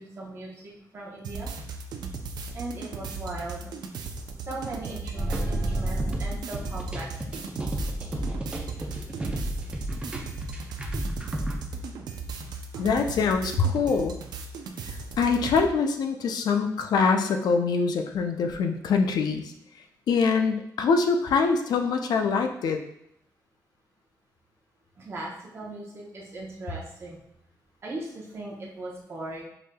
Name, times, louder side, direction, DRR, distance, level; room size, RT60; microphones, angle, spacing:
voice 1, 0.0-1.5 2.5-3.7 4.5-7.1 10.4-10.5 25.0-27.2 27.8-29.4, right 2 dB, 40° right, -4 dB, 0.8 m, -38 dB
sound 1, 1.2-15.7, right 4 dB, 85° right, 0.4 m, -37 dB
sound 2, 5.2-11.6, right 1 dB, 15° right, 0.4 m, -31 dB
voice 2, 12.8-14.1 14.9-19.5 20.1-22.8, left 5 dB, 75° left, 5 dB, 0.4 m, -24 dB
4.8 x 2.7 x 2.2 m, 0.77 s
wide cardioid pair, 180°, 7 cm